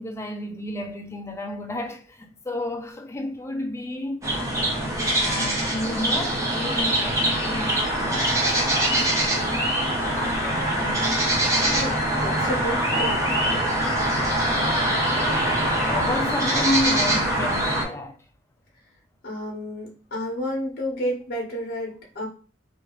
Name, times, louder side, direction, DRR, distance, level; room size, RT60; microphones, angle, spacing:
voice 1, 0.0-4.3 5.2-9.5 10.0-11.0 14.5-15.3 15.8-18.2, left 1 dB, 15° left, 0.4 m, -32 dB
sound 1, 4.2-17.8, right 1 dB, 15° right, 0.8 m, -23 dB
voice 2, 11.7-13.2 19.2-22.3, equal, 55° left, 1.1 m, -31 dB
3.1 x 2.4 x 3.0 m
head